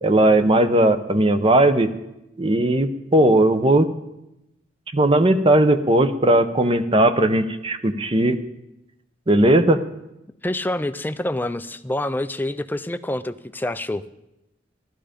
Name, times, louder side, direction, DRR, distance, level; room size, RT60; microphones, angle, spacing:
voice 1, 0.0-1.9 2.4-3.9 4.9-8.4 9.3-9.8, right 1 dB, 30° right, 10 dB, 0.8 m, -17 dB
voice 2, 10.4-14.0, left 1 dB, 10° left, 11 dB, 0.5 m, -27 dB
15.0 x 12.5 x 5.1 m, 0.90 s
head